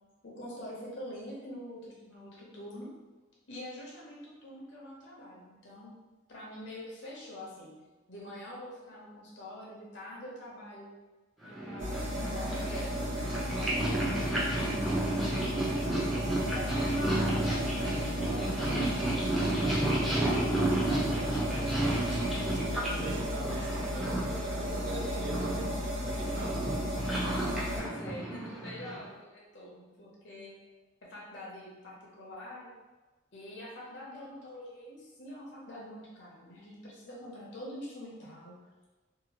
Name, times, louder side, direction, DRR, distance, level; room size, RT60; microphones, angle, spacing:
voice 1, 0.2-2.9 3.5-5.9 6.3-7.7 8.1-10.9 11.4-15.4 16.5-20.3 27.7-30.6 31.0-32.7 33.3-38.6, left 1 dB, 60° left, -4 dB, 0.7 m, -45 dB
Purr, 11.5-29.1, right 1 dB, ahead, 0.5 m, -32 dB
sound 1, 11.8-27.8, equal, 75° right, 1.0 m, -35 dB
voice 2, 21.2-26.8, right 1 dB, 55° right, 0 dB, 0.4 m, -42 dB
2.8 x 2.3 x 2.8 m, 1.2 s
head